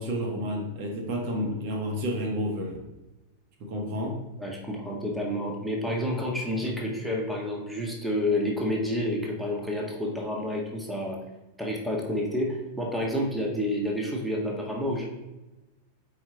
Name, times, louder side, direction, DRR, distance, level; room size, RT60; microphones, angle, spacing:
voice 1, 0.0-2.8 3.6-4.2, equal, 45° right, 1 dB, 1.5 m, -30 dB
voice 2, 4.4-11.2 11.6-15.0, left 1 dB, 5° right, -2 dB, 1.6 m, -29 dB
9.1 x 4.6 x 3.9 m, 1.0 s
figure-of-eight pair, 90°, 0 cm